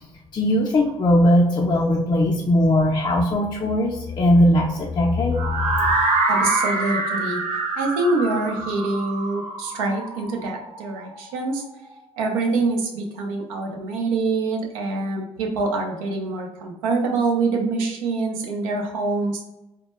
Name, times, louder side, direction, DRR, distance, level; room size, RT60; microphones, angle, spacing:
voice 1, 0.3-5.9, left 1 dB, 30° left, -2 dB, 0.4 m, -19 dB
sound 1, 5.4-11.3, right 3 dB, 35° right, 0.7 m, -25 dB
voice 2, 6.3-7.5 7.8-11.6 12.2-19.4, right 3 dB, 85° right, 1 dB, 0.4 m, -25 dB
2.1 x 2.1 x 2.9 m, 0.95 s
hypercardioid pair, 50°, 17 cm